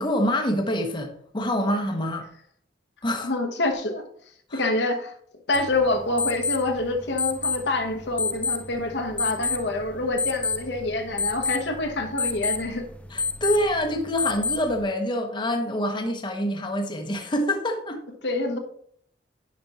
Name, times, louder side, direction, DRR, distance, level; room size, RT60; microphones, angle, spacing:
voice 1, 0.0-2.3 3.0-3.3 4.5-4.6 13.1-18.0, equal, 25° left, 3 dB, 0.8 m, -26 dB
voice 2, 3.2-4.1 4.5-5.1 5.5-12.9 18.2-18.6, left 2 dB, 70° left, 5 dB, 1.0 m, -26 dB
sound 1, 5.5-14.8, left 4 dB, 5° left, 0.4 m, -30 dB
10.0 x 5.1 x 3.0 m, 0.64 s
head